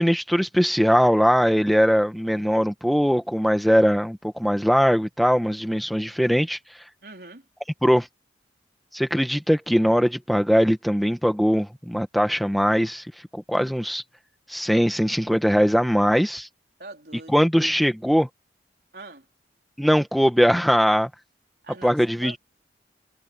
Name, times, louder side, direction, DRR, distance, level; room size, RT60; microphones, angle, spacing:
voice 1, 0.0-6.6 7.8-8.1 8.9-13.0 13.3-14.0 14.5-16.5 17.3-18.3 19.8-21.1 21.8-22.4, equal, ahead, 1.6 m, -20 dB
voice 2, 7.0-7.4 16.8-17.3 18.9-19.2 21.6-22.4, right 2 dB, 60° right, 4.3 m, -42 dB
head